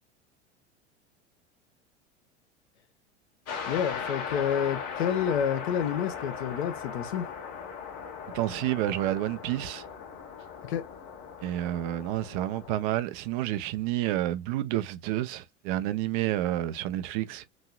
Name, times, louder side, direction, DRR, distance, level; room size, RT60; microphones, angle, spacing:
sound 1, 3.5-12.8, left 6 dB, 45° left, 1.4 m, -38 dB
voice 1, 3.7-7.3 10.6-10.9, left 8 dB, 65° left, 1.0 m, -29 dB
voice 2, 8.3-9.9 11.4-17.4, right 14 dB, 45° right, 0.5 m, -29 dB
3.1 x 2.7 x 2.3 m
figure-of-eight pair, 80°, 35 cm